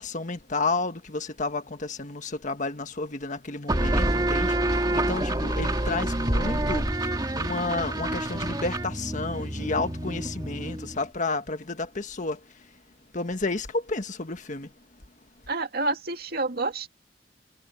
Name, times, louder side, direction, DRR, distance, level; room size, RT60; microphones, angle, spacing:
voice 1, 0.0-12.7 13.1-14.7, left 3 dB, 45° left, 1.5 m, -31 dB
sound 1, 3.7-11.0, right 1 dB, 20° right, 1.7 m, -27 dB
voice 2, 15.5-16.9, right 2 dB, 60° right, 2.3 m, -28 dB
head